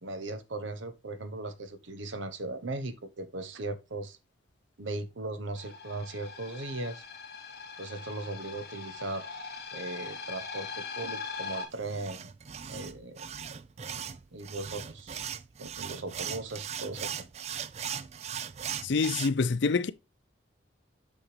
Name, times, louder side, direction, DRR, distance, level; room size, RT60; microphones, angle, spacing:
voice 1, 0.0-4.2 4.8-7.0 7.8-9.3 9.7-12.3 12.7-13.2 14.3-15.2 15.6-17.1, right 2 dB, 80° right, 1.0 m, -38 dB
sound 1, 5.6-11.7, left 5 dB, 55° left, 2.1 m, -41 dB
sound 2, 11.7-19.3, right 8 dB, 35° right, 0.3 m, -39 dB
voice 2, 18.8-19.9, left 4 dB, 70° left, 0.5 m, -26 dB
7.3 x 5.5 x 3.2 m
head